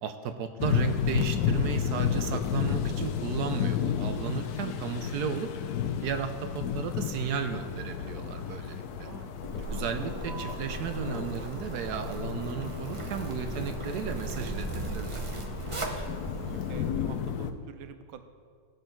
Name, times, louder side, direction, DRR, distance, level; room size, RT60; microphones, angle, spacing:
voice 1, 0.0-5.5 6.0-9.1 9.7-15.2, right 7 dB, 70° right, 8 dB, 1.0 m, -34 dB
sound 1, 0.6-17.5, left 8 dB, 65° left, 1.0 m, -33 dB
voice 2, 9.0-10.1 16.7-18.2, right 8 dB, 90° right, 9 dB, 1.4 m, -48 dB
Zipper (clothing), 9.4-16.9, right 1 dB, 35° right, 0.4 m, -37 dB
sound 2, 10.3-17.3, right 1 dB, 30° left, 0.9 m, -55 dB
17.0 x 6.4 x 4.5 m, 2.1 s
omnidirectional pair, 2.1 m